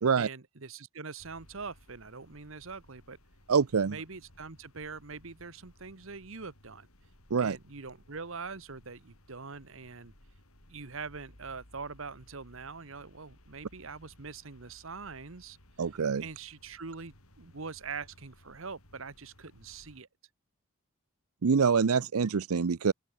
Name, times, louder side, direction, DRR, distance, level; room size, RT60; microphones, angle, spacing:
voice 1, 0.2-3.2 3.8-6.9 7.4-10.1 10.7-15.6 16.2-20.1, right 4 dB, 70° right, 1.2 m, -43 dB
sound 1, 1.2-20.0, left 1 dB, 85° left, 7.1 m, -59 dB
voice 2, 3.5-4.0 7.3-7.6 15.8-16.2 21.4-22.9, right 5 dB, 90° right, 0.6 m, -25 dB
open air
head